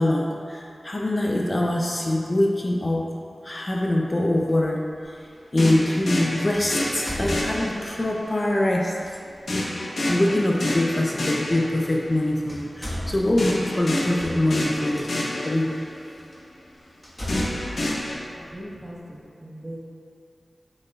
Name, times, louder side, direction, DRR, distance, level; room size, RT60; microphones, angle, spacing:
voice 1, 0.0-3.2 3.4-4.8 5.5-9.0 10.1-15.1 15.5-15.8, left 1 dB, 35° left, -1 dB, 0.6 m, -23 dB
sound 1, 4.5-4.6 6.5-8.0 9.0-9.2 11.0-11.1 12.0-12.2 12.5-15.1 15.7-15.8 16.3-16.4 17.0-18.8, equal, 5° left, 1.5 m, -35 dB
sound 2, 5.6-8.2 9.5-12.1 13.4-16.0 17.3-18.1, left 1 dB, 85° left, 1.1 m, -28 dB
voice 2, 18.4-19.9, equal, 25° right, -4 dB, 1.3 m, -39 dB
8.1 x 5.5 x 2.4 m, 2.4 s
wide cardioid pair, 55°, 0 cm